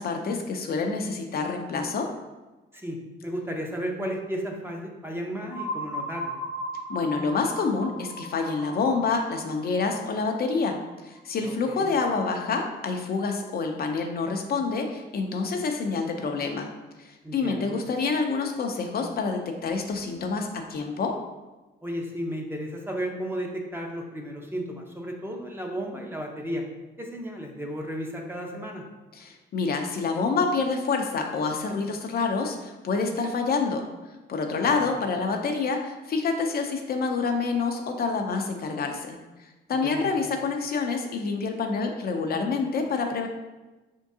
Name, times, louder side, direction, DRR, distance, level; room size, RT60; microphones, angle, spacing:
voice 1, 0.0-2.1 6.9-16.7 17.0-21.2 29.1-33.8 34.3-39.2 39.7-43.3, left 4 dB, 50° left, 3 dB, 0.5 m, -27 dB
voice 2, 2.7-6.3 11.5-11.9 17.2-17.7 21.8-26.6 27.0-28.8 34.6-34.8 39.7-40.2, equal, 10° right, 1 dB, 0.7 m, -34 dB
sound 1, 5.5-11.2, equal, 70° right, 1.2 m, -37 dB
4.5 x 3.5 x 2.7 m, 1.2 s
cardioid pair, 90°, 20 cm